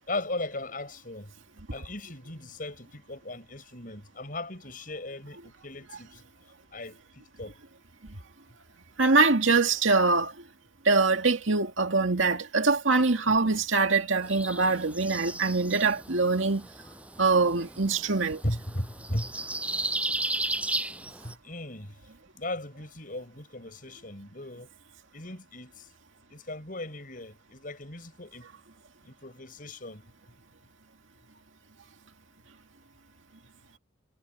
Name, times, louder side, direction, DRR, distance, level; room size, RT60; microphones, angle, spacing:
voice 1, 0.1-1.3 1.7-6.2 6.7-7.6 13.3-13.4 18.4-19.3 21.2-21.9 22.3-24.7 25.1-25.9 26.3-28.5 29.0-30.0, left 1 dB, 45° left, 7.0 m, -37 dB
voice 2, 9.0-10.3 10.9-16.7 17.2-18.4, right 3 dB, 80° right, 2.2 m, -23 dB
sound 1, 14.2-21.3, right 2 dB, 5° right, 6.6 m, -35 dB
head